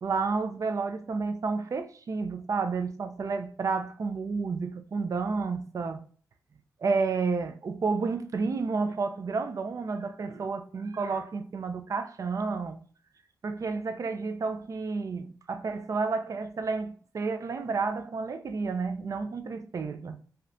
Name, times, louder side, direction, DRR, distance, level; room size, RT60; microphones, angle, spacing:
voice 1, 0.0-6.0 6.8-12.8 13.4-20.2, right 4 dB, 55° right, 0.5 m, -31 dB
2.8 x 2.4 x 3.3 m
cardioid pair, 60°, 7 cm